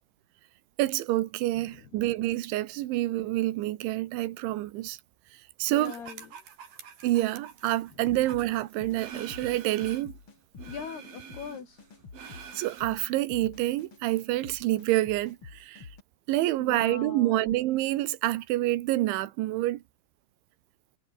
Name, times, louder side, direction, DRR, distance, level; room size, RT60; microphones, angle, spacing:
voice 1, 0.8-5.0 5.6-5.9 7.0-10.2 12.6-15.9 16.3-19.8, right 16 dB, 85° right, 3.6 m, -27 dB
voice 2, 1.6-1.9 5.7-6.3 10.6-11.8 16.6-17.6, left 7 dB, 60° left, 6.2 m, -41 dB
sound 1, 5.8-10.2 10.6-12.8, right 7 dB, 55° right, 5.0 m, -46 dB
sound 2, 8.0-16.0, left 4 dB, 30° left, 3.7 m, -48 dB
omnidirectional pair, 5.3 m